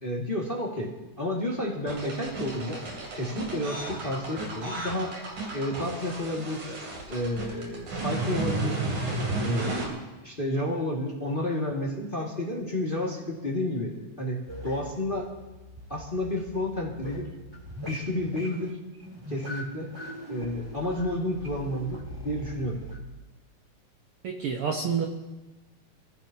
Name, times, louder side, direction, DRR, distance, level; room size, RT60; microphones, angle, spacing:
voice 1, 0.0-2.8 3.1-5.2 5.5-6.7 7.1-8.8 9.4-9.9 10.2-15.3 15.9-17.3 17.9-18.8 19.3-19.9 20.3-22.8, left 1 dB, 20° left, -3 dB, 1.9 m, -31 dB
sound 1, 1.9-9.9, right 3 dB, 85° right, 4.7 m, -33 dB
sound 2, 14.5-23.0, equal, 10° right, 3.1 m, -41 dB
voice 2, 24.2-25.1, right 6 dB, 60° right, 1 dB, 1.7 m, -28 dB
26.5 x 15.5 x 2.9 m, 1.1 s
omnidirectional pair, 3.4 m